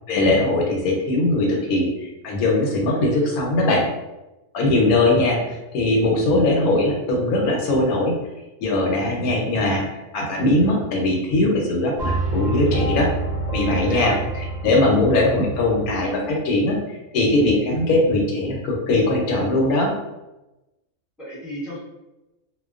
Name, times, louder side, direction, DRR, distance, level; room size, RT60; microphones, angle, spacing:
voice 1, 0.1-1.9 2.2-3.9 4.5-8.2 8.6-13.1 13.5-14.1 14.6-16.8 17.1-19.9, left 2 dB, 85° left, -1 dB, 1.1 m, -20 dB
sound 1, 12.0-16.2, right 2 dB, 65° right, 0.4 m, -27 dB
voice 2, 13.6-14.1 21.2-21.8, equal, ahead, -10 dB, 0.7 m, -32 dB
2.5 x 2.1 x 2.3 m, 1.0 s
omnidirectional pair, 1.5 m